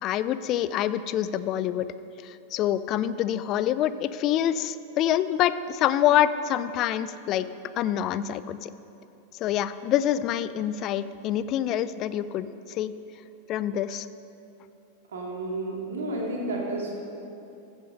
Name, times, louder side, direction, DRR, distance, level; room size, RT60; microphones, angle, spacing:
voice 1, 0.0-1.9 2.2-7.5 7.8-8.7 9.4-12.9 13.5-14.1, left 11 dB, 35° left, 14 dB, 0.4 m, -26 dB
voice 2, 15.1-16.9, right 2 dB, 60° right, -2 dB, 2.3 m, -31 dB
15.0 x 6.1 x 5.4 m, 2.8 s
figure-of-eight pair, 90°, 0 cm